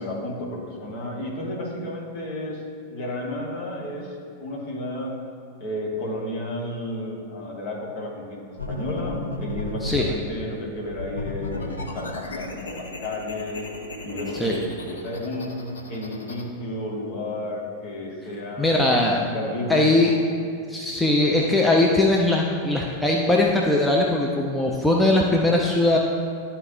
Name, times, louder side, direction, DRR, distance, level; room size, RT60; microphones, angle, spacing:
voice 1, 0.0-2.6 2.9-5.2 5.6-8.4 8.7-13.7 14.0-15.6 15.9-18.8 19.1-20.2, left 1 dB, 50° left, -2 dB, 1.5 m, -32 dB
sound 1, 8.6-10.2 10.9-16.4, left 2 dB, 75° left, 0.7 m, -34 dB
voice 2, 18.6-19.2 19.7-20.1 20.7-26.0, left 2 dB, 5° left, -1 dB, 0.6 m, -20 dB
11.5 x 4.4 x 2.7 m, 2.3 s
figure-of-eight pair, 90°, 0 cm